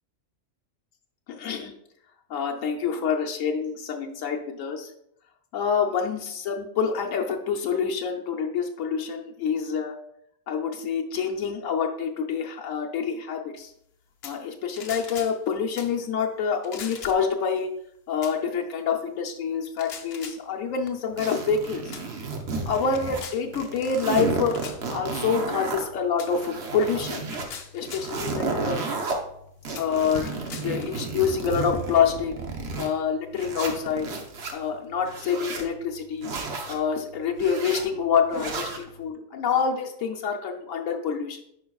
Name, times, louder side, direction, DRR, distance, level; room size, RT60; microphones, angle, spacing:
voice 1, 1.3-1.7 2.3-4.9 5.5-9.9 10.5-13.7 14.2-17.7 18.1-21.9 22.6-24.6 24.9-27.2 27.7-28.8 29.7-30.3 30.6-32.3 32.8-34.1 34.5-36.3 36.7-41.4, left 6 dB, 85° left, 1 dB, 1.1 m, -27 dB
sound 1, 14.2-14.5 14.8-15.4 15.8-16.0 16.6-17.3 18.2-18.4 19.7-20.4 21.3-21.5 21.9-22.1 22.5-23.4 24.5-24.8 26.2-26.3 27.2-28.1 28.9-29.0 29.7-30.9, left 6 dB, 60° left, 0.8 m, -41 dB
sound 2, 21.2-23.3 23.5-25.8 26.2-27.5 27.9-29.1 29.6-32.9 33.4-34.5 35.0-35.7 36.2-36.8 37.4-37.8 38.3-38.8, right 4 dB, 55° right, 1.1 m, -32 dB
10.0 x 4.7 x 2.3 m, 0.73 s
omnidirectional pair, 1.3 m